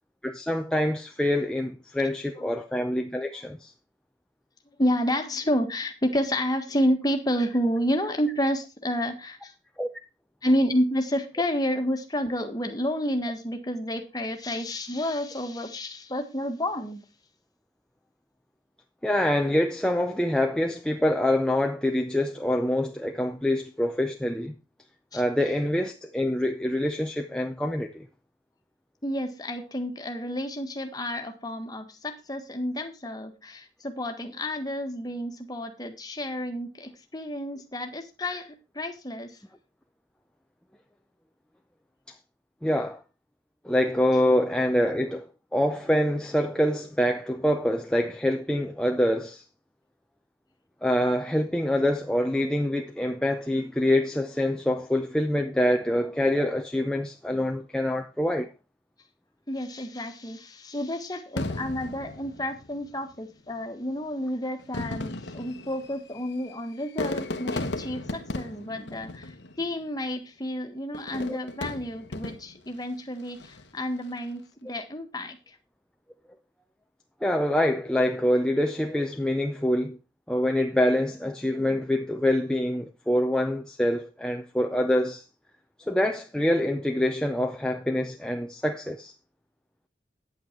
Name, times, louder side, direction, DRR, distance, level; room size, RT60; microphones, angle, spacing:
voice 1, 0.2-3.7 9.8-9.9 19.0-24.5 25.1-28.1 42.6-43.0 43.6-45.3 45.5-49.4 50.8-58.5 71.3-71.4 77.2-80.0 80.3-85.2 85.9-89.1, left 1 dB, 5° left, 0.6 m, -25 dB
voice 2, 4.8-9.5 10.4-17.0 25.1-25.2 29.0-39.4 59.5-75.6, equal, 20° left, 1.5 m, -30 dB
Fireworks, 61.4-63.0 63.8-63.9 64.6-69.9 70.9-72.7 73.3-73.8, left 2 dB, 80° left, 1.1 m, -35 dB
9.6 x 8.6 x 4.5 m
head